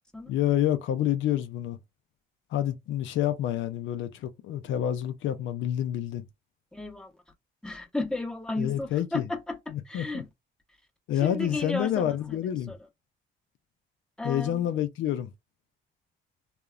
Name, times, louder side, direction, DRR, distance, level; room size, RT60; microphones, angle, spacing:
voice 1, 0.3-1.8 2.5-6.3 8.6-9.2 9.7-10.2 11.1-12.7 14.2-15.3, left 11 dB, 75° left, 0.4 m, -28 dB
voice 2, 6.7-7.1 7.6-10.3 11.1-12.8 14.2-14.6, left 2 dB, 5° left, 0.7 m, -34 dB
2.8 x 2.0 x 2.4 m
cardioid pair, 90°, 20 cm